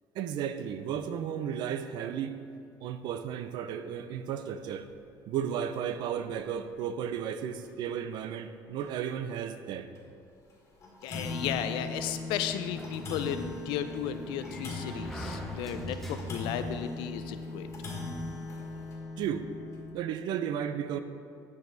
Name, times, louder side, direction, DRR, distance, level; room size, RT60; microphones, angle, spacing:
voice 1, 0.1-2.4 2.8-4.9 5.3-9.9 19.2-19.5 19.9-21.0, right 8 dB, 65° right, 10 dB, 0.4 m, -34 dB
sound 1, 4.7-4.9 5.3-5.4 5.9-6.0 7.0-7.1 7.6-7.7 8.2-8.3 8.8-8.9 10.0-10.1 10.5-10.6 10.8-19.9, left 2 dB, 35° left, 1.6 m, -39 dB
voice 2, 11.0-17.7, left 9 dB, 85° left, 10 dB, 0.4 m, -34 dB
Sliding door, 12.0-16.7, equal, 5° left, 0.7 m, -43 dB
9.3 x 4.8 x 3.9 m, 2.3 s
cardioid pair, 135°, 8 cm